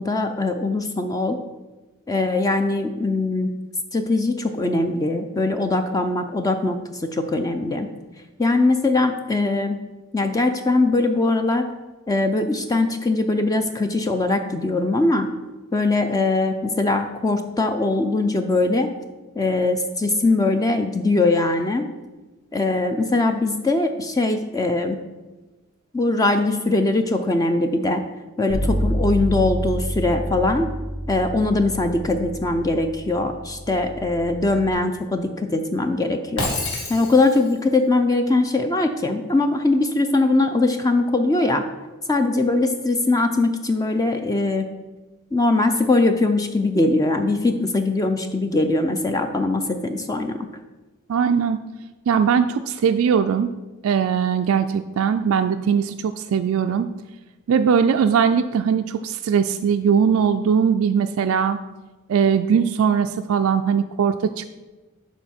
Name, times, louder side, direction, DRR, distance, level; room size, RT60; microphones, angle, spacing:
voice 1, 0.0-1.4 2.1-3.5 3.9-7.9 8.4-9.8 10.1-11.6 12.1-15.3 15.7-18.9 19.4-21.9 22.5-25.0 25.9-28.0 28.4-30.7 31.1-36.5 36.9-41.6 42.1-44.7 45.3-50.5, left 2 dB, 15° left, 6 dB, 0.4 m, -21 dB
Bass guitar, 28.5-34.7, equal, 35° left, 3.2 m, -28 dB
Shatter, 36.4-37.6, left 2 dB, 70° left, 2.1 m, -28 dB
voice 2, 51.1-51.6 52.1-53.5 53.8-56.9 57.5-61.6 62.1-64.5, right 7 dB, 70° right, 8 dB, 0.3 m, -20 dB
11.5 x 4.6 x 4.3 m, 1.2 s
head